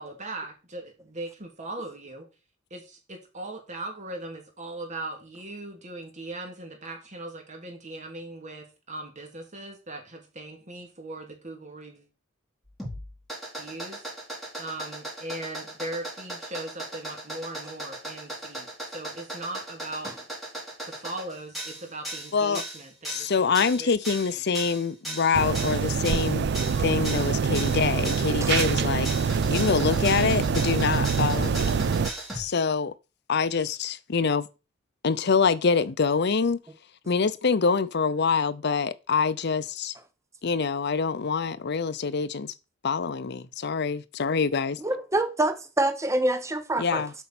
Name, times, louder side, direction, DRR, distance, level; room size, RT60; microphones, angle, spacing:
voice 1, 0.0-2.3 2.7-12.1 13.6-14.0 14.6-20.1 20.8-24.4, right 2 dB, 40° right, 2.7 m, -39 dB
sound 1, 12.7-32.4, right 1 dB, ahead, 4.4 m, -36 dB
voice 2, 22.3-22.6 23.1-26.5 26.8-29.1 29.5-31.8 32.3-32.9 33.3-34.5 35.0-36.6 37.1-39.9 40.4-42.5 42.8-44.8 46.8-47.1, left 5 dB, 55° left, 0.6 m, -25 dB
sound 2, 25.3-32.1, right 6 dB, 60° right, 0.4 m, -25 dB
voice 3, 44.8-47.0, right 1 dB, 15° right, 0.8 m, -26 dB
8.2 x 5.4 x 6.0 m
head